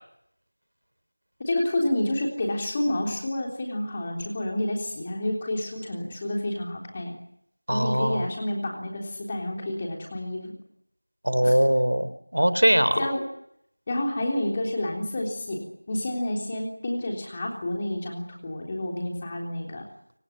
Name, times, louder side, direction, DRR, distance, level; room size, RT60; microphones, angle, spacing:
voice 1, 1.4-7.1 7.7-10.5 11.4-11.5 13.0-13.2 13.9-15.6 15.9-19.8, left 1 dB, 15° left, 0 dB, 3.6 m, -29 dB
voice 2, 7.7-8.3 11.2-13.0, equal, 75° right, 13 dB, 3.1 m, -21 dB
25.5 x 18.0 x 8.9 m, 0.72 s
figure-of-eight pair, 175°, 0 cm